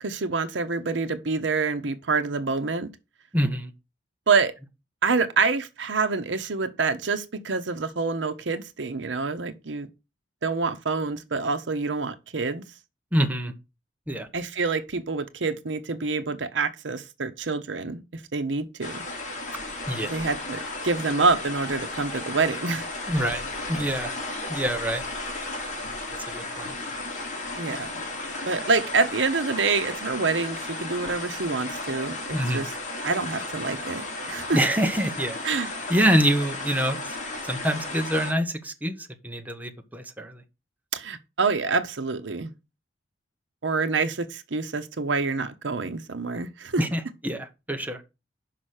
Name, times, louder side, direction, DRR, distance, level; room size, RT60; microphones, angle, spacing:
voice 1, 0.0-2.9 4.3-4.5 5.0-9.9 10.4-12.6 14.3-19.0 20.0-22.9 27.6-27.9 28.5-32.7 33.0-34.6 35.4-35.7 40.9-42.5 43.6-46.8, right 4 dB, 75° right, 0.8 m, -27 dB
voice 2, 3.3-3.7 13.1-13.5 14.1-14.3 19.9-20.1 23.1-23.4 23.7-24.1 24.5-25.0 26.3-26.7 32.3-32.6 34.5-35.4 35.9-37.0 37.4-38.9 39.2-40.4 46.8-48.0, equal, 10° right, 0.9 m, -25 dB
sound 1, 18.8-38.3, left 2 dB, 40° left, 2.7 m, -34 dB
5.9 x 5.5 x 6.4 m
head